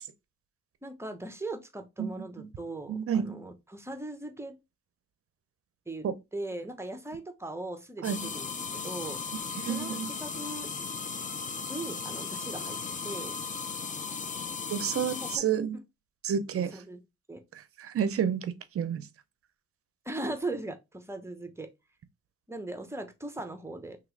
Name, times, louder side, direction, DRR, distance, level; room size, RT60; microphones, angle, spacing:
voice 1, 0.8-4.5 5.9-6.1 6.3-8.5 8.7-9.2 9.6-10.7 11.7-12.8 13.0-13.3 15.1-15.4 16.7-17.0 17.3-17.4 20.0-21.7 22.5-24.0, right 2 dB, 10° right, 0.8 m, -39 dB
voice 2, 2.9-3.4 6.0-6.1 8.0-8.3 9.6-10.1 14.7-15.8 16.2-16.8 17.8-19.1, right 8 dB, 50° right, 0.6 m, -30 dB
sound 1, 8.0-15.4, left 5 dB, 25° left, 0.5 m, -36 dB
3.0 x 2.9 x 3.8 m
cardioid pair, 90°, 30 cm